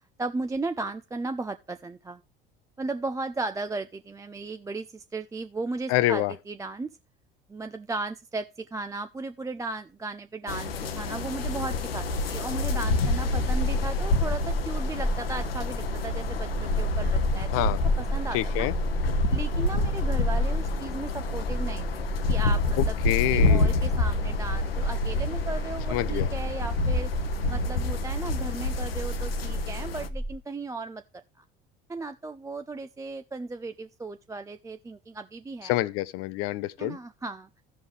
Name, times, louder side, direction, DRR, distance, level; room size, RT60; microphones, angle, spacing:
voice 1, 0.2-2.2 2.8-6.9 7.5-17.5 18.0-18.7 19.3-23.0 23.3-27.1 27.5-31.0 31.4-31.5 31.9-35.8 36.8-37.5, right 3 dB, 10° right, 0.4 m, -36 dB
voice 2, 5.9-6.3 17.5-17.8 18.3-18.7 22.8-23.7 25.9-26.3 35.6-37.0, left 16 dB, 50° left, 0.6 m, -27 dB
sound 1, 10.5-30.1, left 3 dB, 80° left, 0.8 m, -28 dB
sound 2, 13.5-30.4, right 1 dB, 15° left, 1.8 m, -32 dB
15.5 x 5.4 x 3.2 m
figure-of-eight pair, 65°, 29 cm